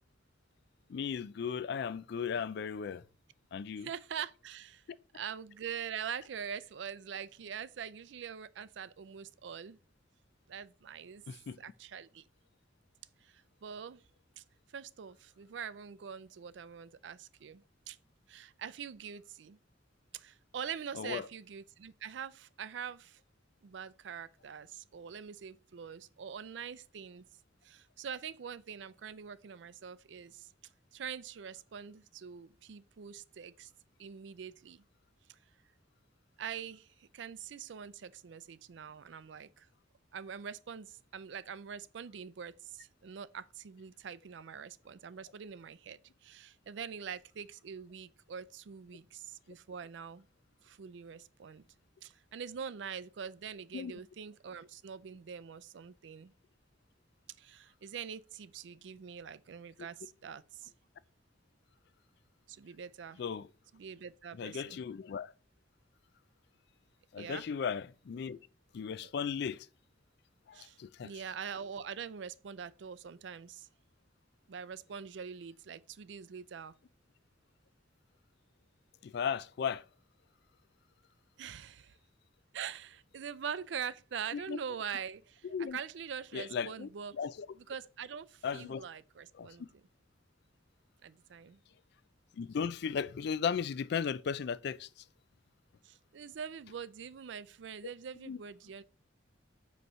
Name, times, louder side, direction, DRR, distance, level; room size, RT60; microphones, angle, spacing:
voice 1, 0.9-3.0 3.5-3.9 11.3-11.6 20.9-21.3 53.7-53.9 63.2-63.5 64.4-65.3 67.1-68.4 68.7-69.7 70.5-71.1 79.0-79.8 84.3-84.6 85.4-85.8 86.3-86.9 87.2-87.5 88.4-88.8 89.4-89.5 92.4-94.9 98.3-98.4, left 6 dB, 60° left, 0.3 m, -36 dB
voice 2, 3.8-4.8 5.1-9.8 10.5-11.2 11.6-12.3 13.2-14.0 14.4-14.5 14.7-18.0 18.3-19.6 20.1-23.2 23.6-27.3 27.6-30.5 30.9-33.7 34.0-34.8 35.3-35.4 36.4-39.7 40.1-50.3 50.6-51.6 52.0-56.3 57.4-60.7 62.5-63.2 63.7-64.8 67.2-67.5 69.0-69.1 70.5-73.7 74.5-76.7 81.4-82.0 82.5-87.2 87.6-89.8 91.0-91.6 95.8-98.8, right 7 dB, 75° right, 0.4 m, -44 dB
7.8 x 3.1 x 5.4 m
head